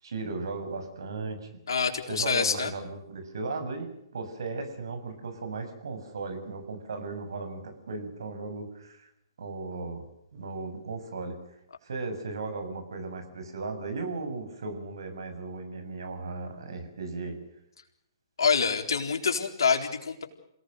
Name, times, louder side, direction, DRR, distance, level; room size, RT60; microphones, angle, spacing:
voice 1, 0.0-1.5 2.1-9.1 9.4-10.1 10.3-11.4 11.8-17.4, right 3 dB, 70° right, 7 dB, 7.0 m, -36 dB
voice 2, 1.7-2.7 18.4-20.3, left 5 dB, 70° left, 4 dB, 4.1 m, -26 dB
28.5 x 18.5 x 6.7 m, 0.81 s
figure-of-eight pair, 125°, 2 cm